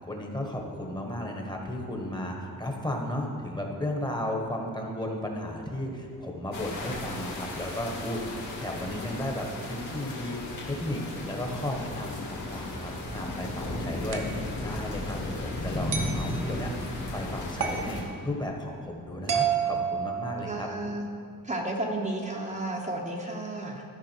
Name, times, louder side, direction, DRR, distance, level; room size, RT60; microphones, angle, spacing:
voice 1, 0.0-20.7, left 1 dB, 10° left, 1 dB, 1.2 m, -34 dB
sound 1, 6.5-18.0, left 1 dB, 60° left, 2.1 m, -35 dB
sound 2, 14.1-14.4 15.9-16.2 17.6-17.9 19.3-20.7, right 7 dB, 65° right, 1.1 m, -29 dB
voice 2, 20.4-21.1 21.4-23.8, right 1 dB, 20° right, -1 dB, 0.8 m, -32 dB
13.5 x 5.1 x 4.5 m, 2.6 s
cardioid pair, 110°, 34 cm